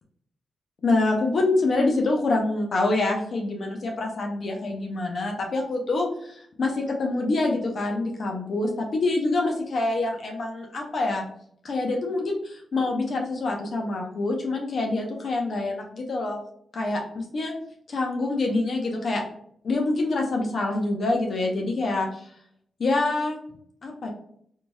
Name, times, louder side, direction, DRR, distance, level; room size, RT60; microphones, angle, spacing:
voice 1, 0.8-11.2 11.6-16.4 16.7-17.5 17.9-19.2 19.6-22.1 22.8-23.4 23.8-24.1, left 2 dB, 65° left, 1 dB, 0.7 m, -26 dB
3.0 x 2.7 x 2.3 m, 0.67 s
supercardioid pair, 45°, 0 cm